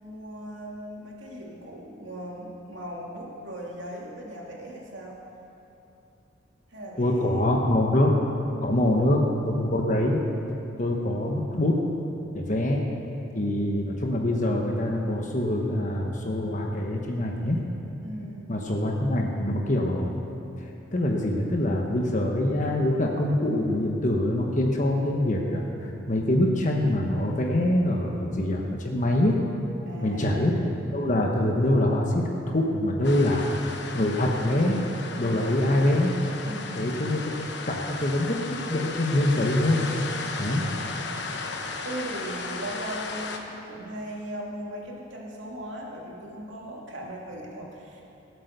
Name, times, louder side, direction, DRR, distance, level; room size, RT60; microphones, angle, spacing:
voice 1, 0.0-5.2 6.7-7.4 8.7-9.2 18.0-18.5 29.9-30.4 33.0-33.4 36.4-36.9 40.4-48.0, right 1 dB, 75° right, -2 dB, 2.5 m, -39 dB
voice 2, 7.0-8.1 8.6-10.2 10.8-11.8 12.3-12.8 13.3-17.6 18.5-20.1 20.9-29.4 30.0-33.5 33.9-34.8 35.2-36.1 36.7-37.2 37.7-39.9 40.4-40.6, left 1 dB, 40° left, 0 dB, 1.2 m, -24 dB
sound 1, 33.0-43.4, left 4 dB, 60° left, 1.1 m, -35 dB
17.5 x 8.0 x 6.8 m, 3.0 s
head